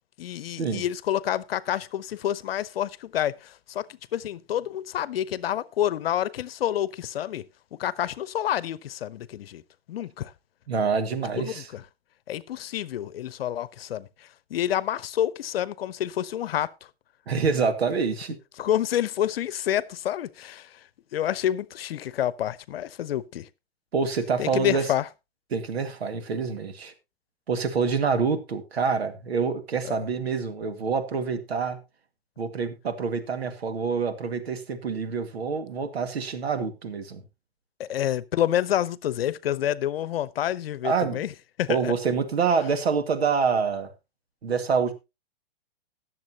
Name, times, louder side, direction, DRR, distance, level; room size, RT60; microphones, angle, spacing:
voice 1, 0.2-7.4 7.8-9.6 9.9-10.3 11.4-11.8 12.3-14.1 14.5-16.7 18.6-20.7 21.1-23.5 24.4-25.1 29.8-30.0 37.8-41.3 41.6-41.9, left 11 dB, 70° left, 0.9 m, -28 dB
voice 2, 10.7-11.7 17.3-18.4 23.9-24.9 25.5-26.9 27.5-31.8 32.4-37.2 40.8-41.2 41.7-43.9 44.4-44.9, right 5 dB, 80° right, 2.1 m, -26 dB
19.5 x 7.4 x 2.9 m
hypercardioid pair, 125°, 31 cm